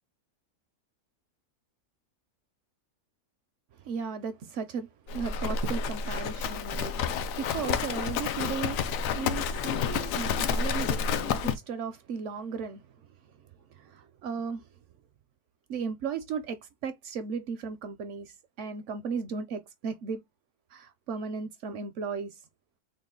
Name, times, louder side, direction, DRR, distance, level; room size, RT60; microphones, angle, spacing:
voice 1, 3.7-12.9 13.2-14.7 15.7-20.2 20.7-22.4, right 5 dB, 70° right, 0.7 m, -36 dB
Livestock farm animals working animals, 5.1-11.6, left 6 dB, 70° left, 0.9 m, -30 dB
3.9 x 2.1 x 3.6 m
omnidirectional pair, 1.6 m